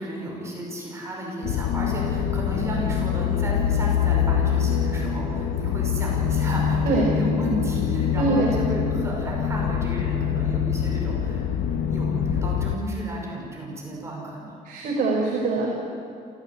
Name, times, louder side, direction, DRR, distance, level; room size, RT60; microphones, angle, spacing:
voice 1, 0.0-11.5 11.9-14.6, right 1 dB, 15° right, -2 dB, 5.5 m, -33 dB
sound 1, 1.4-12.8, left 8 dB, 80° left, 1.3 m, -24 dB
voice 2, 8.2-8.5 14.6-15.7, right 3 dB, 55° right, -2 dB, 4.4 m, -23 dB
27.5 x 16.0 x 8.4 m, 2.5 s
cardioid pair, 155°, 17 cm